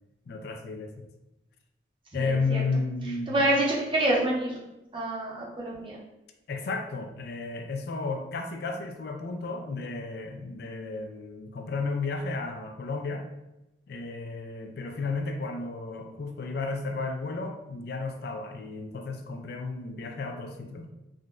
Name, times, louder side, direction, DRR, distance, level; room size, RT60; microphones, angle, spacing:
voice 1, 0.3-1.1 2.1-3.5 6.5-13.3 13.9-20.9, left 3 dB, 60° left, 5 dB, 0.3 m, -33 dB
voice 2, 2.2-2.6 3.3-4.6 4.9-6.0, right 1 dB, 30° right, -4 dB, 0.7 m, -27 dB
3.6 x 2.1 x 2.4 m, 0.94 s
head